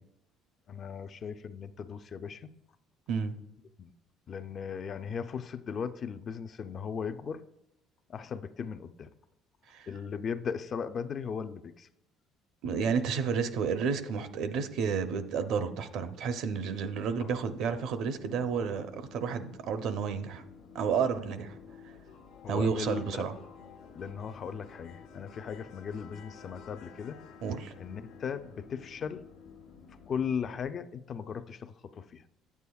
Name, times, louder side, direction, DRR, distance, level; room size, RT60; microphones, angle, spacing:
voice 1, 0.7-2.5 3.8-3.9 4.3-7.4 8.1-9.1 9.9-11.9 17.2-17.3 22.4-23.2 23.9-27.2 27.8-29.3 30.1-32.2, left 6 dB, 40° left, 0.3 m, -37 dB
voice 2, 12.6-20.4 20.7-21.6 22.5-23.3 27.4-27.7, right 6 dB, 65° right, 0.6 m, -31 dB
sound 1, 16.9-30.6, left 6 dB, 75° left, 0.8 m, -52 dB
9.0 x 8.2 x 2.3 m
cardioid pair, 125°, 0 cm